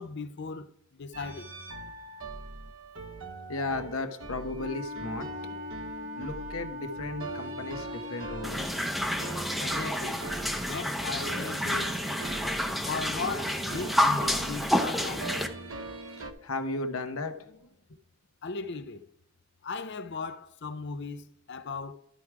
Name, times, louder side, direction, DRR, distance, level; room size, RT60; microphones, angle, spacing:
voice 1, 0.0-1.5 9.6-10.2 10.6-12.0 12.9-15.3 18.4-19.0 19.6-21.9, left 4 dB, 55° left, 0.6 m, -37 dB
sound 1, 1.1-16.3, right 3 dB, 65° right, 1.0 m, -42 dB
voice 2, 3.5-5.6 6.1-8.8 16.4-17.7, left 2 dB, 80° left, 1.1 m, -35 dB
Wind instrument woodwind instrument, 4.6-8.8, left 2 dB, 40° right, 0.7 m, -40 dB
sound 2, 8.4-15.5, equal, ahead, 0.7 m, -29 dB
12.5 x 4.9 x 4.7 m
head